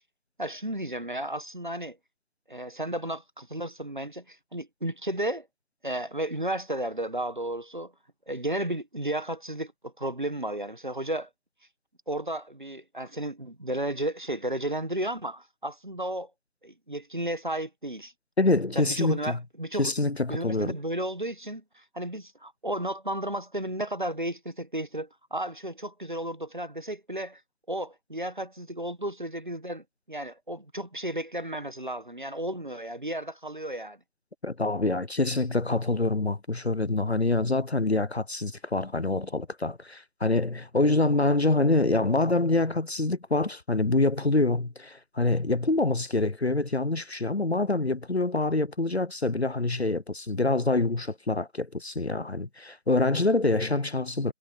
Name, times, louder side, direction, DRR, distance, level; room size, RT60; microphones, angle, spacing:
voice 1, 0.4-2.0 2.5-5.5 5.8-7.9 8.3-11.3 12.1-16.3 16.6-18.1 18.7-19.9 20.3-27.4 27.7-34.0, right 1 dB, 40° right, 1.6 m, -33 dB
voice 2, 18.4-19.4 19.8-20.7 34.4-54.3, left 2 dB, 55° left, 0.9 m, -26 dB
figure-of-eight pair, 175°, 39 cm